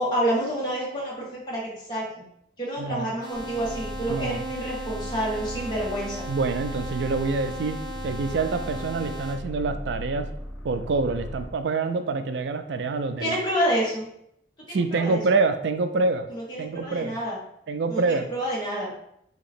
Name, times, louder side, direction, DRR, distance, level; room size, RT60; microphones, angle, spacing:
voice 1, 0.0-2.2 2.6-6.3 13.2-14.1 14.7-15.2 16.3-17.4 17.9-18.9, equal, 25° left, -6 dB, 1.4 m, -28 dB
voice 2, 2.8-3.1 4.1-4.5 6.3-7.8 8.0-10.3 10.6-13.4 14.7-16.3 16.6-17.2 17.7-18.3, right 3 dB, 75° right, 8 dB, 0.4 m, -26 dB
sound 1, 3.2-9.4, equal, 25° right, 0.7 m, -37 dB
sound 2, 3.3-11.6, equal, 5° left, 1.1 m, -37 dB
4.0 x 2.9 x 4.1 m, 0.75 s
head